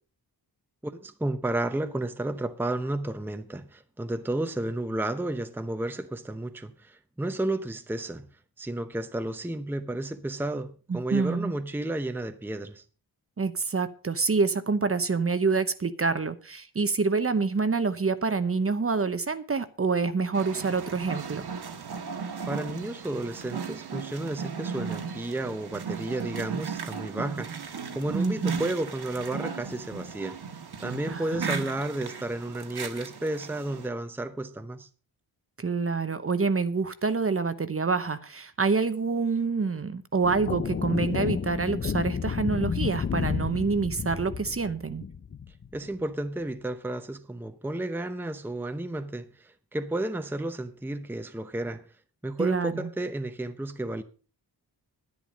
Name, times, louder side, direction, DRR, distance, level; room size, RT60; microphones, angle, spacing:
voice 1, 0.8-8.3 8.6-12.8 22.5-34.9 45.7-51.8 52.2-54.0, right 1 dB, 5° right, 0.8 m, -32 dB
voice 2, 10.9-11.5 13.4-21.5 28.1-28.6 31.1-31.6 35.6-45.0 52.4-52.9, right 4 dB, 30° right, 0.9 m, -27 dB
sound 1, 20.3-33.9, right 6 dB, 65° right, 1.7 m, -36 dB
sound 2, 40.2-45.9, left 6 dB, 30° left, 0.6 m, -31 dB
10.5 x 10.5 x 5.2 m
wide cardioid pair, 120°, 42 cm